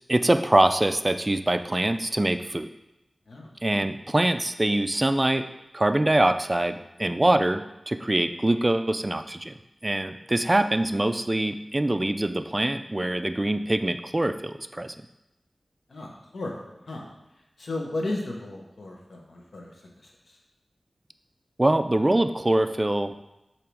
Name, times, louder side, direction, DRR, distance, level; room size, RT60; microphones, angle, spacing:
voice 1, 0.1-2.7 3.6-5.5 5.7-9.5 9.8-14.9 21.6-23.2, right 1 dB, 25° right, 9 dB, 0.3 m, -24 dB
voice 2, 15.9-16.5 16.9-17.0 17.6-19.7, left 2 dB, 80° left, -1 dB, 1.1 m, -34 dB
6.9 x 3.0 x 4.7 m, 0.92 s
wide cardioid pair, 70°, 0 cm